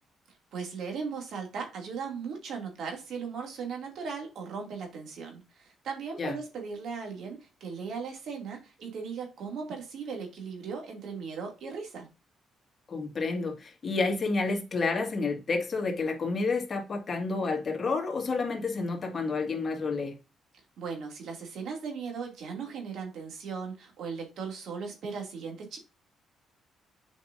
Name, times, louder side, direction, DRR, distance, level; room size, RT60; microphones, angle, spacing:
voice 1, 0.5-12.1 20.8-25.8, right 5 dB, 70° right, 2.5 m, -37 dB
voice 2, 12.9-20.2, left 3 dB, 40° left, 2.0 m, -30 dB
7.4 x 5.3 x 2.6 m
cardioid pair, 90°, 0 cm